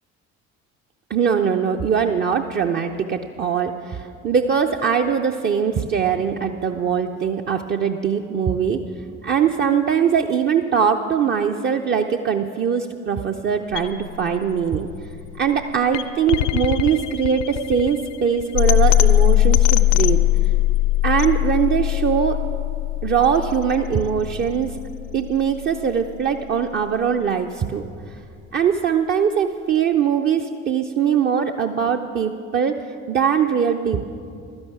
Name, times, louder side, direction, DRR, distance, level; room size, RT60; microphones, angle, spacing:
voice 1, 1.1-8.8 9.2-14.9 15.4-20.2 21.0-22.4 23.0-24.8 25.1-27.8 28.5-32.8 33.1-34.1, right 7 dB, 25° right, 4 dB, 0.5 m, -21 dB
sound 1, 13.7-25.8, left 14 dB, 60° left, 0.6 m, -21 dB
12.0 x 10.5 x 7.0 m, 2.4 s
figure-of-eight pair, 55°, 40 cm